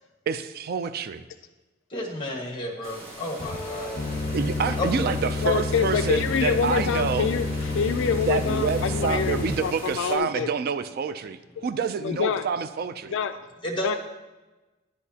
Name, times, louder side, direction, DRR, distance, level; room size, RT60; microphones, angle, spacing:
voice 1, 0.3-1.2 4.3-7.3 8.3-13.1, right 6 dB, 50° right, 12 dB, 0.3 m, -28 dB
voice 2, 1.9-4.3 4.8-4.9 13.6-14.0, left 1 dB, 25° left, 1 dB, 1.5 m, -32 dB
sound 1, 2.8-10.2, right 1 dB, 75° right, 2.2 m, -42 dB
sound 2, 3.4-9.6, left 3 dB, 45° left, 1.1 m, -29 dB
voice 3, 5.4-10.5 11.6-11.7 12.0-12.4 13.1-13.4 13.8-14.0, left 6 dB, 65° left, 10 dB, 0.3 m, -26 dB
10.5 x 10.0 x 2.8 m, 1.2 s
head